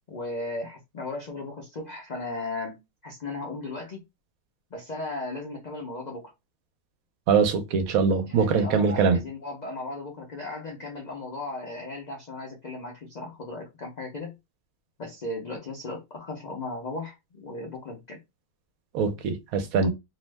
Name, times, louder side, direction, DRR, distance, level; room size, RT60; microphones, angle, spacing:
voice 1, 0.1-4.0 4.7-6.3 8.2-14.3 15.0-18.2, left 2 dB, 80° left, 0.4 m, -36 dB
voice 2, 7.3-9.2 18.9-19.9, right 5 dB, 75° right, 1.0 m, -23 dB
2.7 x 2.0 x 3.2 m
omnidirectional pair, 1.6 m